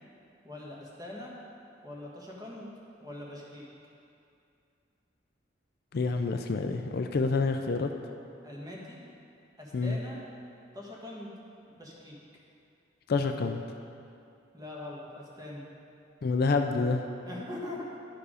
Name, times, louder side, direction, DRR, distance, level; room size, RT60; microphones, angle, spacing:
voice 1, 0.4-1.3 1.8-2.7 3.0-3.7 8.4-9.0 9.6-10.2 10.7-11.3 11.7-12.2 14.5-15.6 17.2-17.8, left 1 dB, 20° right, -4 dB, 1.4 m, -42 dB
voice 2, 5.9-7.9 9.7-10.0 13.1-13.6 16.2-17.0, left 4 dB, 55° left, 5 dB, 0.4 m, -28 dB
11.5 x 4.7 x 5.0 m, 2.5 s
head